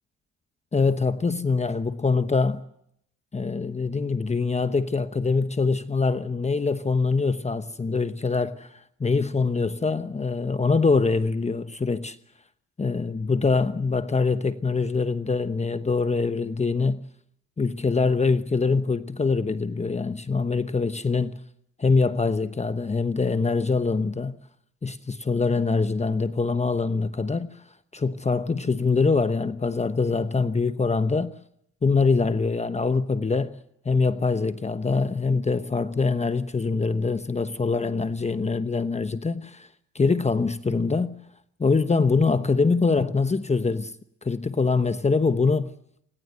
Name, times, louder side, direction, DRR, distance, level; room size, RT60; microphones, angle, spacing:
voice 1, 0.7-2.6 3.3-12.2 12.8-17.1 17.6-21.4 21.8-24.4 24.8-27.5 27.9-31.3 31.8-33.6 33.8-39.7 39.9-41.1 41.6-43.9 44.2-45.7, left 4 dB, 20° left, 1.1 m, -24 dB
28.5 x 17.5 x 8.0 m
cardioid pair, 90°, 30 cm